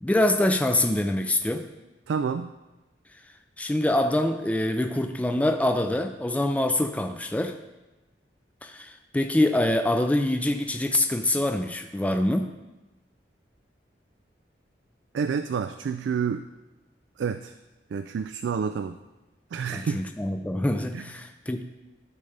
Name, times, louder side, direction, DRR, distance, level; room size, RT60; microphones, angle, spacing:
voice 1, 0.0-1.7 3.6-7.6 8.6-12.5 19.7-21.6, left 1 dB, 10° left, 6 dB, 0.3 m, -25 dB
voice 2, 2.1-2.5 15.1-16.5 17.2-17.5 17.9-19.0 19.5-20.0 20.9-21.0, right 6 dB, 80° right, 10 dB, 0.3 m, -29 dB
12.5 x 5.3 x 3.3 m, 1.1 s
head